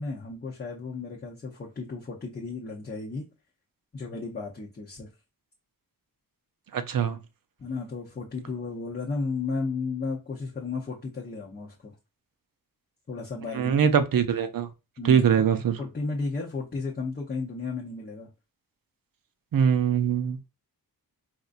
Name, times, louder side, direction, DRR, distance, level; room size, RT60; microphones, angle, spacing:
voice 1, 0.0-3.2 3.9-5.1 7.6-11.9 13.1-13.7 15.0-15.2 15.8-18.3, left 3 dB, 25° left, 0.6 m, -34 dB
voice 2, 6.7-7.2 13.5-14.7 15.0-15.8 19.5-20.5, right 7 dB, 65° right, 0.6 m, -23 dB
4.2 x 2.5 x 2.4 m
wide cardioid pair, 175°, 37 cm